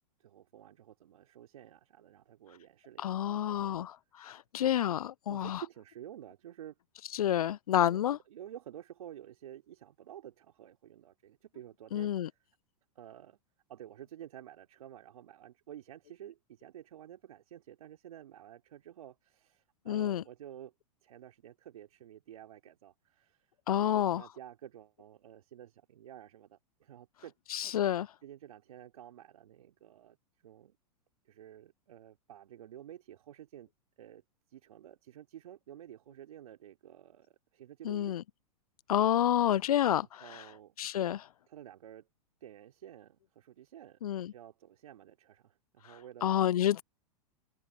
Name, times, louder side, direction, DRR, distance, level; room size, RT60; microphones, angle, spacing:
voice 1, 0.0-3.9 5.3-6.8 7.9-8.0 8.3-12.4 13.0-13.4 13.7-20.7 21.0-27.3 28.2-30.2 30.4-30.8 31.3-33.7 34.0-34.2 34.5-38.2 40.2-40.8 41.1-41.2 41.5-42.1 42.4-46.3, right 11 dB, 70° right, 3.8 m, -51 dB
voice 2, 3.0-5.6 7.0-8.2 11.9-12.3 19.9-20.2 23.7-24.3 27.5-28.1 37.8-38.2 38.9-40.5 40.8-41.2 44.0-44.3 45.8-46.8, left 11 dB, 75° left, 0.5 m, -29 dB
hypercardioid pair, 100°, 19 cm